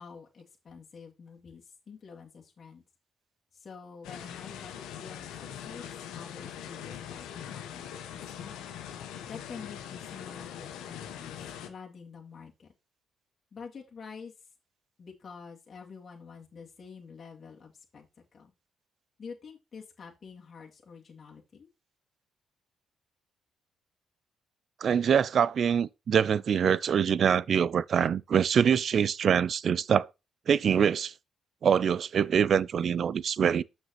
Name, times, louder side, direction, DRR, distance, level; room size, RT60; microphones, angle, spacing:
voice 1, 0.0-2.8 3.5-7.8 8.4-8.7 9.3-11.4 11.6-12.7 13.5-14.3 15.0-18.1 18.3-18.5 19.2-21.7, left 5 dB, 50° left, 2.2 m, -47 dB
sound 1, 4.0-11.7, left 9 dB, 85° left, 1.0 m, -42 dB
voice 2, 24.8-30.1 30.5-31.1 31.6-33.6, right 7 dB, 60° right, 0.4 m, -24 dB
7.3 x 6.4 x 3.0 m
supercardioid pair, 60°, 0 cm